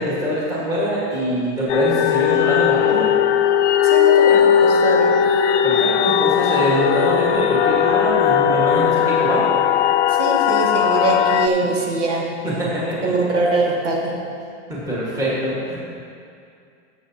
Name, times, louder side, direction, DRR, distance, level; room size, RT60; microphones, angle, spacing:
voice 1, 0.0-3.1 5.6-9.4 12.4-12.9 14.7-15.8, equal, 10° right, -8 dB, 1.7 m, -23 dB
sound 1, 1.7-11.5, left 9 dB, 85° left, 0.6 m, -17 dB
voice 2, 3.8-5.2 10.1-12.3 13.0-14.1, right 3 dB, 90° right, -2 dB, 2.2 m, -22 dB
15.0 x 7.1 x 2.9 m, 2.4 s
supercardioid pair, 175°, 35 cm